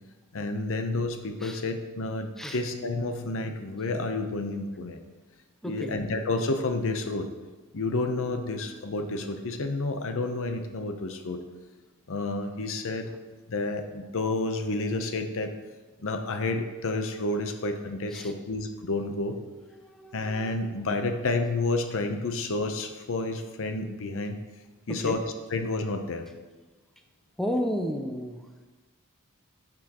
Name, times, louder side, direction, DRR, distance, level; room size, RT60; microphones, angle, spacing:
voice 1, 0.3-5.0 5.6-7.3 7.7-11.4 12.1-13.1 13.5-15.5 16.0-19.4 20.1-24.4 24.9-25.2 25.5-26.2, left 2 dB, 65° left, 6 dB, 0.7 m, -30 dB
voice 2, 5.6-6.0 18.1-18.3 19.7-20.4 24.9-25.2 27.4-28.5, equal, ahead, 3 dB, 0.5 m, -33 dB
11.0 x 6.1 x 3.0 m, 1.2 s
head